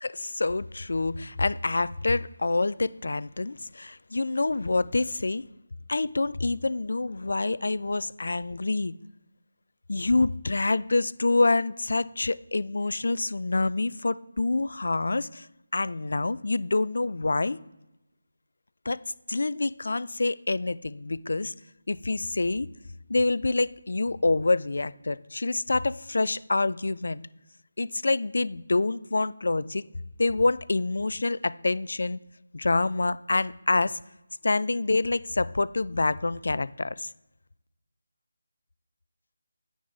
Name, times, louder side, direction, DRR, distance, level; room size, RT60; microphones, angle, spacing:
voice 1, 0.0-5.4 5.9-8.9 9.9-15.5 15.7-17.6 18.9-19.0 19.3-21.5 21.9-22.7 23.1-27.2 27.8-29.8 30.2-32.2 32.5-34.0 34.4-37.1, left 3 dB, 65° left, 0.3 m, -26 dB
9.3 x 3.9 x 3.4 m
figure-of-eight pair, 160°, 0 cm